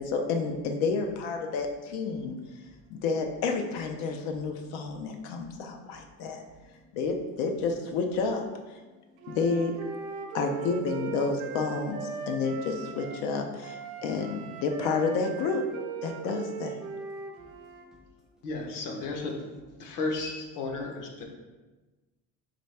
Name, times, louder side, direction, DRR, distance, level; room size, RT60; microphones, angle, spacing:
voice 1, 0.0-2.4 2.9-6.4 6.9-8.5 9.3-9.8 10.3-15.7 16.0-16.8, left 4 dB, 90° left, 4 dB, 0.6 m, -30 dB
voice 2, 2.1-2.7 4.9-5.3 6.6-7.0 8.8-9.4 13.9-14.0 17.4-18.4 19.8-20.0, left 2 dB, ahead, -3 dB, 0.4 m, -61 dB
Wind instrument woodwind instrument, 9.2-13.3 13.6-17.8, right 7 dB, 80° right, 0.6 m, -39 dB
voice 3, 18.4-19.4 19.8-21.2, left 3 dB, 60° left, 2 dB, 0.8 m, -33 dB
4.1 x 3.3 x 3.2 m, 1.2 s
cardioid pair, 155°, 37 cm